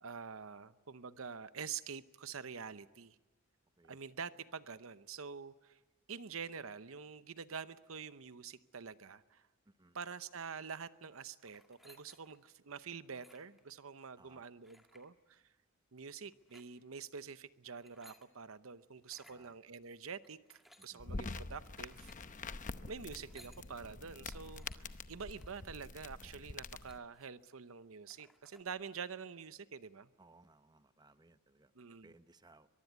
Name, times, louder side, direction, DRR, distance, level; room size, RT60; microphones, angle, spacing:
voice 1, 0.0-3.2 3.9-5.8 6.1-9.4 9.9-15.4 15.9-22.4 22.9-30.1 31.7-32.1, right 6 dB, 75° right, 14 dB, 0.8 m, -47 dB
voice 2, 9.7-10.0 14.2-14.4 19.1-19.6 20.8-21.1 30.2-31.7 32.0-32.7, right 2 dB, 20° right, 11 dB, 0.8 m, -64 dB
sound 1, 11.4-12.5 13.0-13.6 14.6-15.1 16.3-16.7 17.6-18.3 19.0-19.4 20.2-20.9 21.7-22.3 23.1-23.6 24.3-24.8 25.3-25.6 26.2-26.3 26.5-27.4 27.8-27.9 28.1-28.6, equal, ahead, 2.2 m, -63 dB
sound 2, 21.0-27.0, left 3 dB, 40° left, 0.8 m, -46 dB
23.0 x 22.5 x 9.4 m, 1.2 s
head